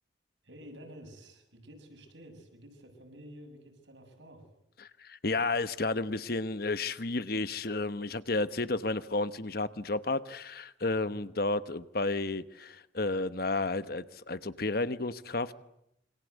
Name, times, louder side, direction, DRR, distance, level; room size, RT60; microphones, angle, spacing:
voice 1, 0.4-4.5 11.0-11.2, equal, 80° right, 7.2 m, -51 dB
voice 2, 5.0-15.5, left 3 dB, 50° left, 1.1 m, -32 dB
27.5 x 25.0 x 8.2 m
head